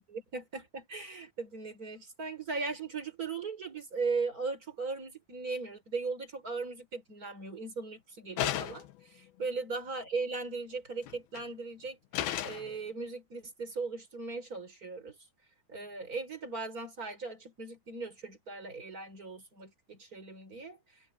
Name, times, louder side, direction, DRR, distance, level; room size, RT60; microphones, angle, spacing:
voice 1, 0.0-12.0 12.4-15.2 15.7-20.8, right 4 dB, 20° right, 4.4 m, -38 dB
sound 1, 8.4-9.0 11.1-11.4 12.1-12.7, left 12 dB, 70° left, 3.0 m, -33 dB
omnidirectional pair, 4.5 m